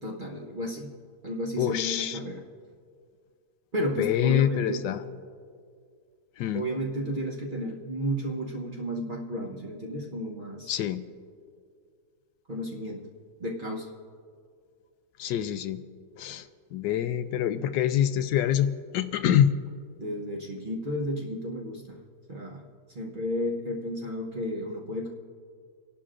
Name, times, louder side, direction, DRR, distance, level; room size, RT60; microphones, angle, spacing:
voice 1, 0.0-0.9 1.2-2.4 3.7-4.8 6.5-10.7 12.5-13.0 13.4-13.9 20.0-22.0 22.3-22.7 22.9-25.1, equal, 35° right, -2 dB, 1.0 m, -32 dB
voice 2, 1.6-2.2 4.0-5.0 6.4-6.6 10.7-11.0 15.2-15.8 16.2-16.4 16.7-19.5, left 10 dB, 85° left, 11 dB, 1.3 m, -25 dB
29.5 x 11.0 x 2.5 m, 2.1 s
omnidirectional pair, 1.9 m